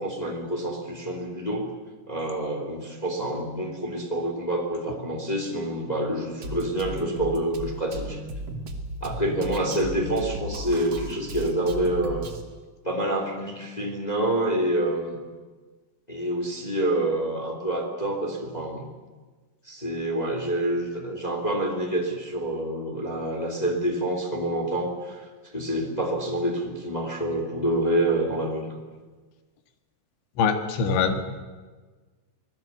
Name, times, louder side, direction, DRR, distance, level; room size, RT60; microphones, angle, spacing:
voice 1, 0.0-1.7 2.1-8.2 9.0-12.2 12.8-15.2 16.1-18.9 19.6-25.2 25.5-28.7, right 1 dB, 25° left, 2 dB, 0.9 m, -27 dB
Drum kit, 6.4-12.4, right 1 dB, 55° right, 1.3 m, -35 dB
voice 2, 30.4-31.4, left 5 dB, 65° left, 6 dB, 3.8 m, -24 dB
25.5 x 18.5 x 8.2 m, 1.4 s
omnidirectional pair, 6.0 m